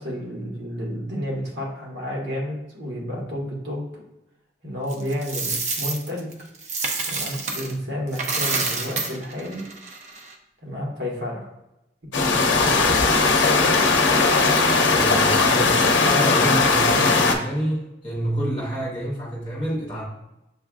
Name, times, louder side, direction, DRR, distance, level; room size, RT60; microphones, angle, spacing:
voice 1, 0.0-4.0 4.6-6.3 7.1-9.6 10.6-11.5 12.1-12.8, equal, 75° right, -2 dB, 1.3 m, -31 dB
Coin (dropping), 4.9-7.7 8.1-10.3, right 3 dB, 40° right, 0.5 m, -28 dB
sound 1, 12.1-17.4, left 3 dB, 85° left, 0.6 m, -18 dB
voice 2, 14.9-20.1, equal, 25° left, -5 dB, 1.4 m, -28 dB
7.3 x 2.4 x 2.3 m, 0.90 s
head